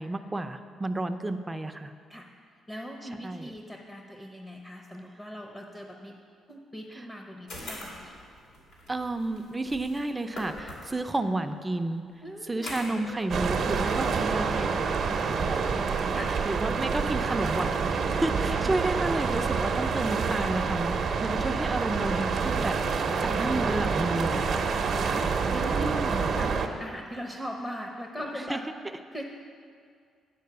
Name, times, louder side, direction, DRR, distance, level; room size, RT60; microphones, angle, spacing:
voice 1, 0.0-1.9 3.0-3.5 6.9-7.1 8.9-12.0 12.5-14.7 15.1-15.8 16.5-24.7 25.8-26.3 28.3-28.6, right 2 dB, 15° right, 8 dB, 0.5 m, -31 dB
voice 2, 2.7-6.2 6.5-8.2 10.6-10.7 12.2-13.0 14.2-14.4 16.1-16.4 23.2-23.4 24.9-28.6 29.1-29.2, equal, 20° left, 2 dB, 0.8 m, -40 dB
sound 1, 7.5-11.1 12.5-14.1, left 1 dB, 80° left, 2.5 m, -43 dB
sound 2, 13.3-26.7, right 5 dB, 55° right, 0.6 m, -27 dB
9.4 x 4.5 x 6.8 m, 2.2 s
cardioid pair, 90°, 0 cm